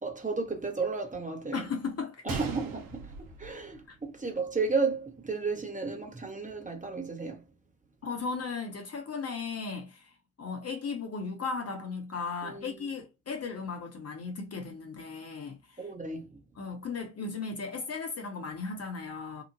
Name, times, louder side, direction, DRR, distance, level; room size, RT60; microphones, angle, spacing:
voice 1, 0.0-1.6 2.2-7.4 12.4-12.9 15.8-16.4, right 4 dB, 20° right, 1.1 m, -33 dB
voice 2, 1.5-2.4 8.0-10.1 10.4-15.8 16.6-19.4, left 4 dB, 45° left, 1.1 m, -36 dB
Gunshot gunfire, 2.3-4.3 4.6-4.7 5.4-5.6, right 4 dB, 70° right, 1.0 m, -39 dB
2.9 x 2.4 x 2.6 m
hypercardioid pair, 50°, 36 cm